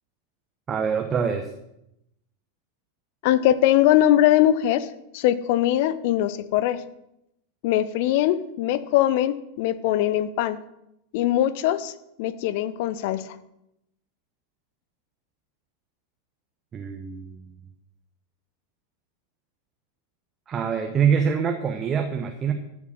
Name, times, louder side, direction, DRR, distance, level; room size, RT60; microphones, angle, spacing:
voice 1, 0.7-1.5 16.7-17.4 20.5-22.5, right 7 dB, 25° right, 5 dB, 1.1 m, -24 dB
voice 2, 3.2-4.9 5.1-6.8 7.6-10.6 11.1-11.9 12.2-13.2, left 12 dB, 50° left, 15 dB, 0.8 m, -21 dB
13.5 x 7.2 x 6.5 m, 0.83 s
figure-of-eight pair, 90°, 0 cm